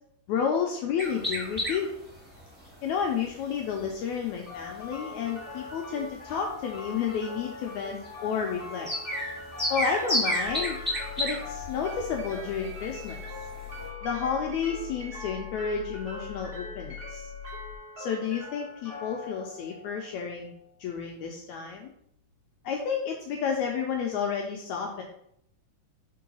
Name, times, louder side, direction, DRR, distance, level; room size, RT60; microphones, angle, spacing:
voice 1, 0.3-1.9 2.8-8.9 9.7-10.8 11.2-13.2 14.0-17.3 18.0-20.5 20.8-21.9 22.6-25.0, left 6 dB, 85° left, 1 dB, 1.7 m, -31 dB
sound 1, 1.0-13.9, equal, 10° right, 0.6 m, -34 dB
sound 2, 4.5-20.5, left 2 dB, 35° right, 1.5 m, -42 dB
sound 3, 10.4-17.8, left 17 dB, 35° left, 1.5 m, -43 dB
4.5 x 3.8 x 5.4 m, 0.73 s
omnidirectional pair, 3.9 m